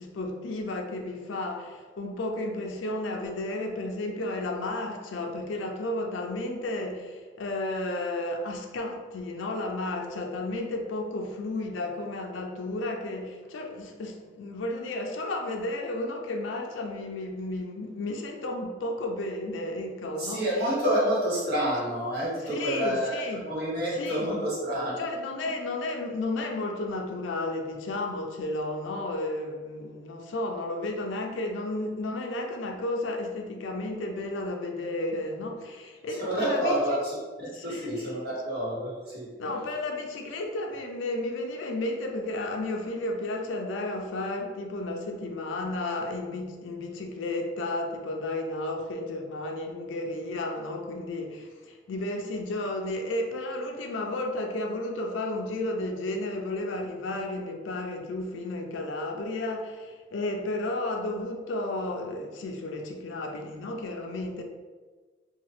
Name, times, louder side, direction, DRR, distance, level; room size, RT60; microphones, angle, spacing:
voice 1, 0.0-20.4 22.4-23.4 23.9-24.3 25.0-37.0 37.5-37.9 39.4-64.4, left 2 dB, 85° left, 3 dB, 0.4 m, -33 dB
voice 2, 20.2-25.0 36.2-39.3, equal, 55° right, -7 dB, 1.1 m, -28 dB
2.9 x 2.3 x 3.1 m, 1.4 s
head